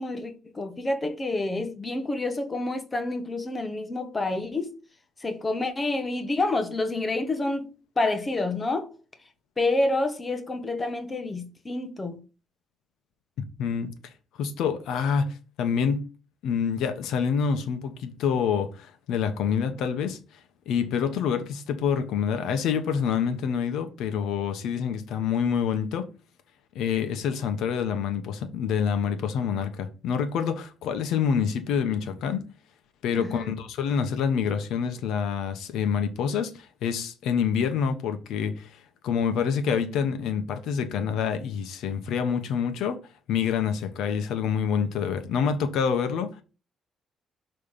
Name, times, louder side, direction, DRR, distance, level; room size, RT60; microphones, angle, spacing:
voice 1, 0.0-4.8 5.2-7.7 8.0-8.9 9.6-12.2 33.1-33.5, left 2 dB, 25° left, 1.1 m, -28 dB
voice 2, 13.6-13.9 14.4-16.1 16.4-20.2 20.7-26.1 26.7-32.4 33.0-38.8 39.0-43.0 43.3-46.3, left 7 dB, 85° left, 1.1 m, -27 dB
6.7 x 3.3 x 5.6 m
cardioid pair, 90°, 0 cm